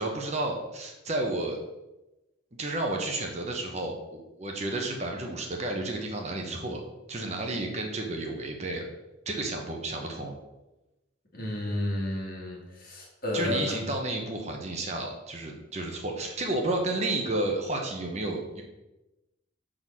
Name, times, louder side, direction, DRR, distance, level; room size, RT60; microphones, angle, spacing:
voice 1, 0.0-1.6 2.6-6.8 7.1-8.9 9.3-10.4 13.3-18.6, right 2 dB, 35° right, 1 dB, 0.9 m, -31 dB
voice 2, 11.3-13.8, left 1 dB, 45° left, -2 dB, 1.9 m, -32 dB
6.2 x 3.8 x 6.2 m, 1.0 s
head